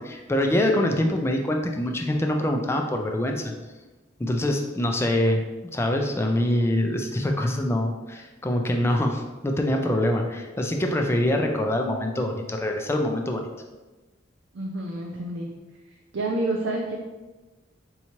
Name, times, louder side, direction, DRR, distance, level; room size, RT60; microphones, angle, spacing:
voice 1, 0.0-3.5 4.2-5.4 5.7-13.5, left 1 dB, 15° left, 3 dB, 0.4 m, -24 dB
voice 2, 10.8-11.2 14.5-15.5 16.1-17.0, right 2 dB, 70° right, -1 dB, 0.5 m, -29 dB
4.6 x 2.8 x 2.9 m, 1.2 s
head